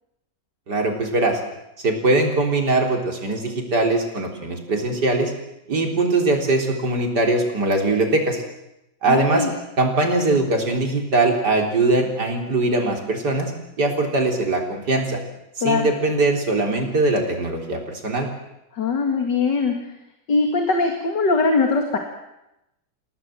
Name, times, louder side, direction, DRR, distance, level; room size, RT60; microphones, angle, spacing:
voice 1, 0.7-1.4 1.8-5.3 5.7-8.4 9.0-9.5 9.8-13.5 13.8-15.2 15.6-18.3, right 2 dB, 65° right, 2 dB, 4.4 m, -21 dB
voice 2, 9.1-9.5 15.6-15.9 18.7-19.8 20.3-22.0, left 4 dB, 75° left, 4 dB, 2.8 m, -21 dB
28.5 x 18.0 x 7.7 m, 0.89 s
omnidirectional pair, 1.9 m